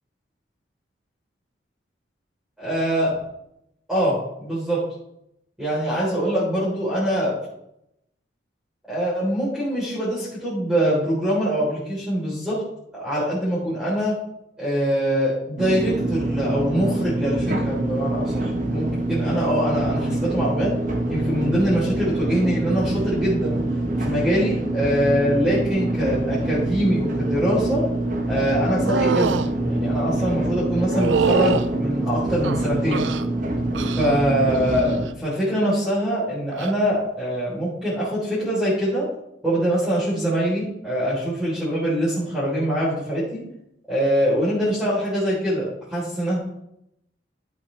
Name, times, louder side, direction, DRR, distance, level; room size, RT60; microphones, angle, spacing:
voice 1, 2.6-3.2 3.9-4.8 5.6-7.3 8.9-12.6 12.9-14.2 14.6-20.7 21.1-23.6 24.0-27.8 28.3-33.0 34.0-39.1 39.4-43.4 43.9-46.4, equal, 5° right, -11 dB, 4.1 m, -23 dB
sound 1, 15.6-35.1, right 1 dB, 45° right, 1.3 m, -25 dB
sound 2, 28.9-29.5 30.9-31.7 32.4-33.3 33.7-34.2 34.5-35.0 36.5-36.7, right 5 dB, 80° right, 0.5 m, -24 dB
11.5 x 8.2 x 3.5 m, 0.81 s
head